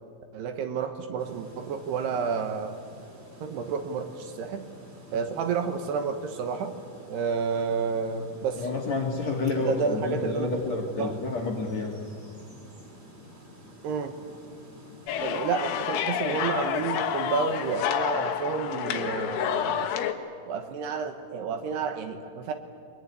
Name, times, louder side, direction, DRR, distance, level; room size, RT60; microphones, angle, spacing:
voice 1, 0.3-2.7 3.4-4.6 5.1-6.7 7.1-8.7 9.6-10.5 11.0-11.1 13.8-14.1 15.2-19.9 20.5-22.5, right 6 dB, 70° right, 7 dB, 3.0 m, -30 dB
sound 1, 1.2-17.8, equal, 20° right, 1.9 m, -49 dB
voice 2, 8.6-12.0, left 3 dB, 45° left, 0 dB, 2.6 m, -29 dB
sound 2, 15.1-20.1, left 9 dB, 80° left, 3.7 m, -29 dB
22.5 x 22.0 x 9.7 m, 2.3 s
omnidirectional pair, 5.4 m